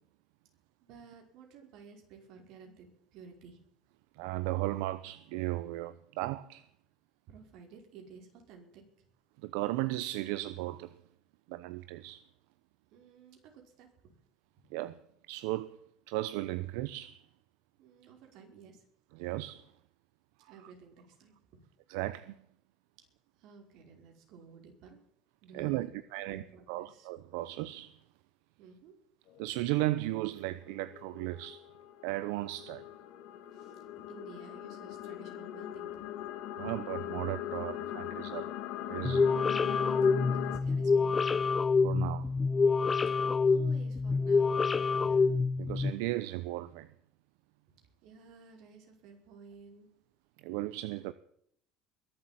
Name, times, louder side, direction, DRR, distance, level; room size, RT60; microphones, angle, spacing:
voice 1, 0.8-3.6 7.3-8.8 12.9-14.1 17.8-18.8 20.5-21.6 23.4-25.0 25.4-27.1 28.6-28.9 33.5-36.1 40.3-41.2 43.5-45.3 48.0-49.9, right 5 dB, 60° right, 5.3 m, -54 dB
voice 2, 4.2-6.6 9.4-11.0 11.5-12.2 14.7-15.0 15.3-15.8 16.1-17.2 19.1-19.7 21.9-22.4 25.5-28.0 29.4-31.6 32.0-32.9 36.5-38.5 38.8-39.4 41.8-42.3 45.6-46.9 50.4-51.1, right 17 dB, 85° right, 0.8 m, -35 dB
sound 1, 29.3-29.6 30.5-40.6, left 13 dB, 65° left, 2.2 m, -40 dB
sound 2, 39.0-45.9, left 4 dB, 20° left, 0.5 m, -27 dB
22.5 x 8.0 x 7.6 m
cardioid pair, 150°, 0 cm